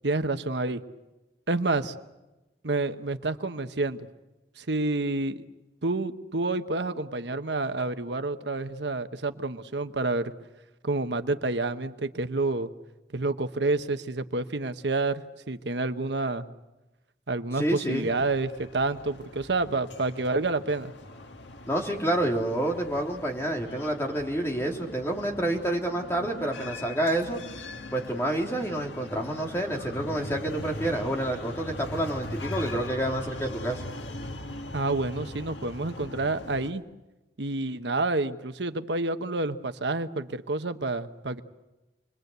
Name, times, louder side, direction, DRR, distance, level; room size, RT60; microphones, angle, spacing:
voice 1, 0.0-0.8 1.5-1.9 2.6-4.1 4.6-5.4 5.8-10.3 10.8-12.7 13.1-15.2 15.5-16.5 17.3-20.9 34.7-36.8 37.4-41.4, right 2 dB, 75° right, 9 dB, 1.1 m, -28 dB
voice 2, 17.6-18.1 21.7-27.4 27.9-33.8, right 1 dB, 15° left, 1 dB, 3.5 m, -28 dB
sound 1, 17.9-36.7, left 2 dB, 85° left, 1.8 m, -41 dB
28.5 x 22.0 x 8.1 m, 1.0 s
head